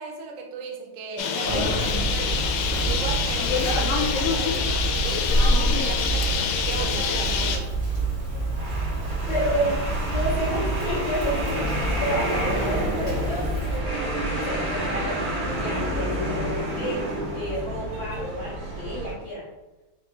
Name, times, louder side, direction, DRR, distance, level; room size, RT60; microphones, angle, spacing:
voice 1, 0.0-7.7 8.9-9.1 9.6-9.7 10.4-10.6 17.7-17.9, right 4 dB, 90° right, 2 dB, 2.4 m, -36 dB
Bird, 1.2-7.6, left 6 dB, 85° left, 2.3 m, -26 dB
Conversation, 1.4-13.8, right 2 dB, 55° right, 0.8 m, -27 dB
sound 1, 1.6-19.1, right 1 dB, 70° right, 1.9 m, -31 dB
voice 2, 5.5-5.9 9.3-19.4, equal, 65° left, -11 dB, 1.3 m, -31 dB
5.4 x 2.3 x 2.9 m, 1.1 s
omnidirectional pair, 4.0 m